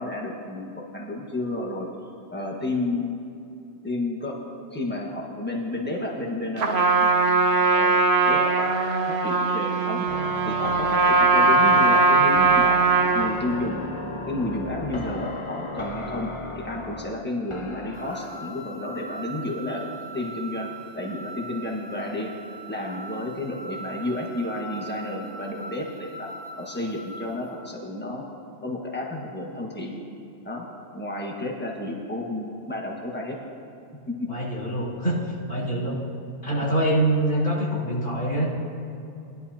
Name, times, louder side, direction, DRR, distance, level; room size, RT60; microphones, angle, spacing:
voice 1, 0.0-1.9 2.3-3.2 3.8-4.4 4.7-7.2 7.4-8.0 8.2-10.1 10.4-12.8 13.1-13.8 14.3-19.9 20.1-20.7 20.9-22.3 22.7-26.3 26.6-28.2 28.6-30.0 30.4-30.7 30.9-33.4 34.1-34.3, left 2 dB, 10° left, -1 dB, 1.4 m, -31 dB
Trumpet, 6.6-13.4, right 3 dB, 65° right, 1.0 m, -20 dB
sound 1, 10.1-18.5, left 2 dB, 30° left, 0.7 m, -35 dB
sound 2, 17.9-27.5, right 3 dB, 65° left, 2.6 m, -41 dB
voice 2, 34.3-35.2 35.5-36.0 36.4-38.5, right 1 dB, 85° left, -7 dB, 3.7 m, -24 dB
20.0 x 11.0 x 2.8 m, 2.7 s
omnidirectional pair, 1.2 m